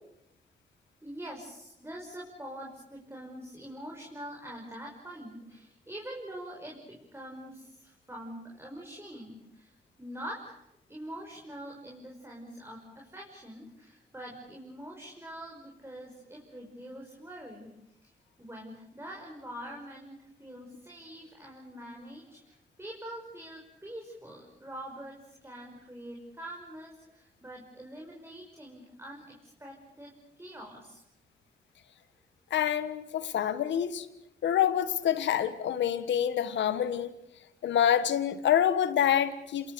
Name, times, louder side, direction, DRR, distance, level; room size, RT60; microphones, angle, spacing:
voice 1, 1.0-10.6 10.9-17.7 18.0-18.1 18.4-31.0, right 1 dB, 15° right, -1 dB, 5.6 m, -44 dB
voice 2, 32.5-34.1 34.4-37.1 37.6-39.7, left 9 dB, 80° left, 13 dB, 1.5 m, -27 dB
27.0 x 22.0 x 6.9 m, 0.86 s
supercardioid pair, 55°, 19 cm